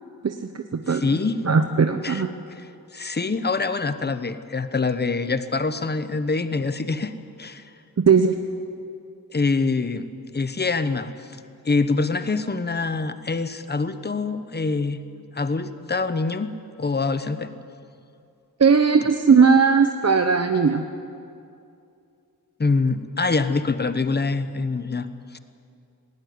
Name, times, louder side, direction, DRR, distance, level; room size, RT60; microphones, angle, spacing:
voice 1, 0.2-1.0 1.4-2.3 8.0-8.3 18.6-20.8, right 5 dB, 45° right, 6 dB, 0.9 m, -18 dB
voice 2, 0.9-1.3 2.0-2.2 2.9-7.1 7.4-7.6 9.3-10.1 10.3-11.1 11.6-15.0 15.3-16.5 16.8-17.5 22.6-25.1, left 3 dB, 25° left, 11 dB, 1.0 m, -25 dB
19.5 x 19.0 x 9.6 m, 2.5 s
wide cardioid pair, 140°, 37 cm